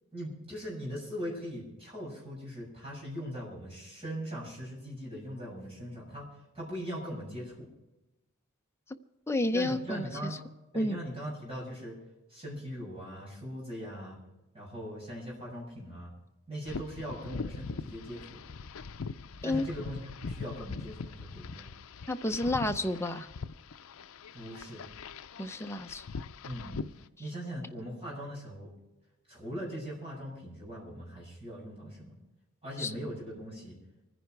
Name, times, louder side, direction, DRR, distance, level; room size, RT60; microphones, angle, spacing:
voice 1, 0.1-6.3 6.5-7.7 9.5-10.4 10.7-12.0 12.3-14.2 14.5-16.1 16.5-18.4 19.4-21.7 24.3-24.8 26.4-26.8 27.2-28.7 29.3-32.2 32.6-33.7, equal, 25° right, -4 dB, 7.2 m, -40 dB
voice 2, 9.3-10.0 10.8-11.0 19.4-19.6 22.1-23.3 25.4-26.0 32.8-32.9, left 1 dB, 10° left, 6 dB, 0.7 m, -30 dB
sound 1, 16.7-27.1, left 4 dB, 70° left, 0.6 m, -42 dB
24.5 x 10.0 x 4.7 m, 1.0 s
head